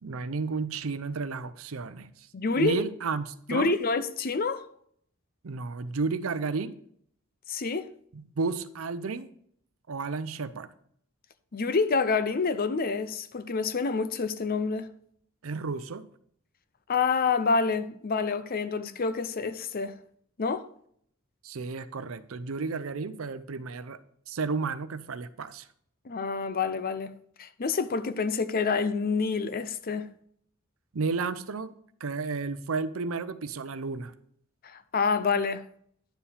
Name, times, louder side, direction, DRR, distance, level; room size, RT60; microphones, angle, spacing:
voice 1, 0.0-2.3 2.6-3.7 5.4-6.8 8.1-9.3 9.9-10.7 15.4-16.0 21.4-24.0 24.3-25.7 30.9-31.7 32.0-34.1, right 4 dB, 75° right, 0.6 m, -32 dB
voice 2, 2.3-2.8 3.5-4.7 7.5-7.9 11.5-14.9 16.9-20.0 20.4-20.6 26.1-27.1 27.4-30.1 34.6-35.6, left 4 dB, 45° left, 0.6 m, -27 dB
10.5 x 7.1 x 3.4 m
head